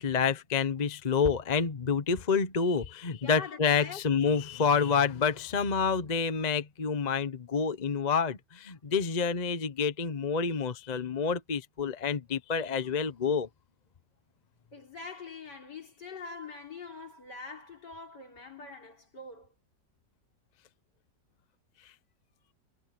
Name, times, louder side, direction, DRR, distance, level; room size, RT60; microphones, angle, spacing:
voice 1, 0.0-13.5, left 5 dB, 30° left, 0.9 m, -28 dB
voice 2, 3.2-4.0 14.7-19.5, left 4 dB, 70° left, 4.5 m, -44 dB
omnidirectional pair, 1.9 m